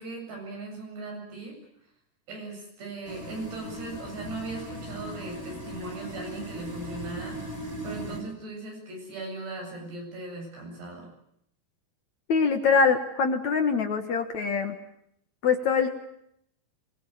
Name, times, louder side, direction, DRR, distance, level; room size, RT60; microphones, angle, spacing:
voice 1, 0.0-1.5 2.3-7.4 7.8-11.1, right 2 dB, 80° right, 1 dB, 10.0 m, -38 dB
sound 1, 3.0-8.2, right 1 dB, 20° right, 6.4 m, -38 dB
voice 2, 12.3-14.8 15.4-15.9, left 5 dB, 55° left, 6 dB, 2.4 m, -23 dB
24.5 x 22.0 x 9.3 m, 0.74 s
omnidirectional pair, 4.7 m